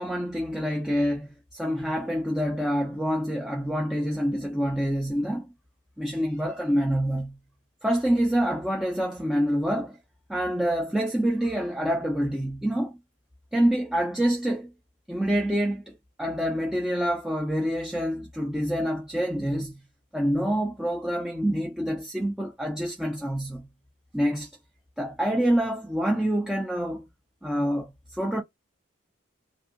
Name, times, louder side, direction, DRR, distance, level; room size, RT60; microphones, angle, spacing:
voice 1, 0.0-5.5 6.0-7.4 7.8-10.0 10.3-12.9 13.5-14.7 15.1-19.8 20.1-23.7 24.1-24.5 25.0-27.1 27.4-28.4, equal, 5° right, 0.4 m, -26 dB
2.6 x 2.5 x 2.4 m
head